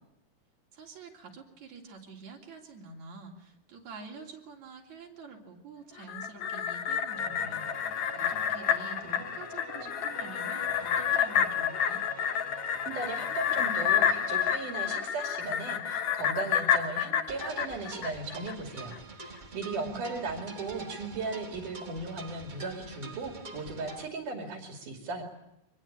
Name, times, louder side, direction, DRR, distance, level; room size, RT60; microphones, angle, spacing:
voice 1, 0.7-12.0 19.7-20.1, right 4 dB, 65° right, 0 dB, 4.5 m, -47 dB
sound 1, 6.0-18.5 18.9-19.0, left 8 dB, 65° left, 2.4 m, -29 dB
sound 2, 7.1-15.7, right 2 dB, 5° right, 3.3 m, -47 dB
voice 2, 12.9-25.2, right 3 dB, 85° right, 4 dB, 4.1 m, -37 dB
sound 3, 17.3-24.1, right 3 dB, 45° right, 0.6 m, -45 dB
24.0 x 20.5 x 8.8 m, 0.84 s
omnidirectional pair, 3.6 m